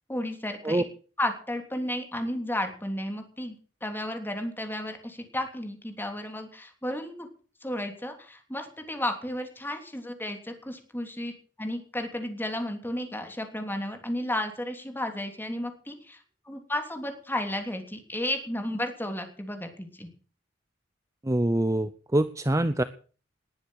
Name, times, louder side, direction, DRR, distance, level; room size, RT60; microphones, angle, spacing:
voice 1, 0.1-0.8 1.2-3.6 3.8-7.3 7.6-20.1, left 1 dB, 10° left, 5 dB, 3.3 m, -33 dB
voice 2, 21.2-22.8, right 1 dB, 15° right, 12 dB, 0.7 m, -25 dB
20.0 x 10.0 x 6.5 m, 0.41 s
head